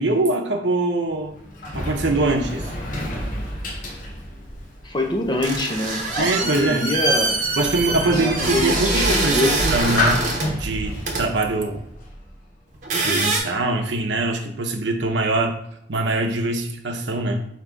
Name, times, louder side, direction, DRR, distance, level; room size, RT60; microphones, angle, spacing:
voice 1, 0.0-1.4 1.7-2.7 6.2-6.9 7.6-11.8 13.0-15.6 15.9-17.5, right 2 dB, 80° right, 2 dB, 0.7 m, -23 dB
Sliding door, 1.1-12.5, left 1 dB, 50° left, 0.9 m, -30 dB
voice 2, 4.8-7.4 8.1-9.6, left 1 dB, 25° left, 1 dB, 0.7 m, -25 dB
sound 1, 5.4-10.5 11.1-11.2 12.7-13.4, right 3 dB, 45° right, 0.9 m, -24 dB
3.8 x 2.9 x 4.6 m, 0.75 s
head